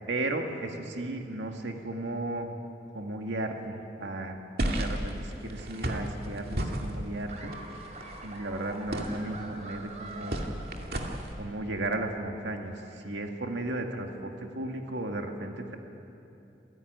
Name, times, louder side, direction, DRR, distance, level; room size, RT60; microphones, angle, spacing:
voice 1, 0.1-2.6 2.9-4.5 4.8-7.6 8.2-10.5 11.4-15.8, right 2 dB, 85° right, 3 dB, 2.1 m, -35 dB
sound 1, 4.6-11.3, right 1 dB, 55° right, 2.4 m, -34 dB
Laughter, 7.3-11.3, right 2 dB, 40° right, 3.2 m, -45 dB
27.0 x 17.0 x 9.6 m, 2.8 s
head